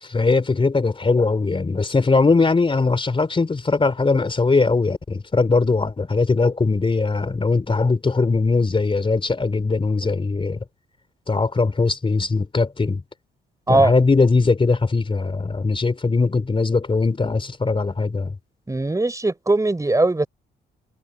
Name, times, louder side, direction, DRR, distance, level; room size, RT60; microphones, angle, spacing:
voice 1, 0.0-10.6 11.3-13.0 13.7-18.3, left 3 dB, 25° left, 3.7 m, -20 dB
voice 2, 18.7-20.3, right 2 dB, 15° right, 5.1 m, -19 dB
cardioid pair, 90°, 20 cm